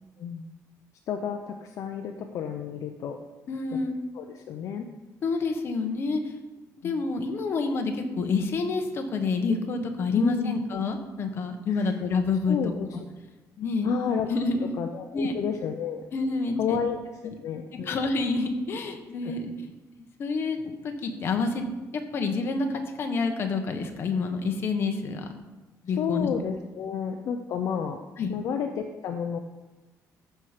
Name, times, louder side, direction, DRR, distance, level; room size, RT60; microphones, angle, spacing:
voice 1, 1.1-3.2 4.1-4.9 6.8-6.9 10.2-10.6 11.7-12.0 12.5-12.9 13.8-14.3 14.8-16.0 16.6-18.0 19.2-19.4 26.0-28.0 28.3-29.4, left 7 dB, 55° left, 5 dB, 0.7 m, -31 dB
voice 2, 3.5-4.0 5.2-6.2 6.8-12.7 13.6-13.9 14.3-14.7 15.1-15.3 16.1-16.8 17.2-17.3 17.8-19.7 20.2-21.6 21.9-25.3 25.8-26.3 28.2-28.3, left 4 dB, 40° left, 5 dB, 1.2 m, -28 dB
14.0 x 5.7 x 5.0 m, 1.2 s
cardioid pair, 180°, 6 cm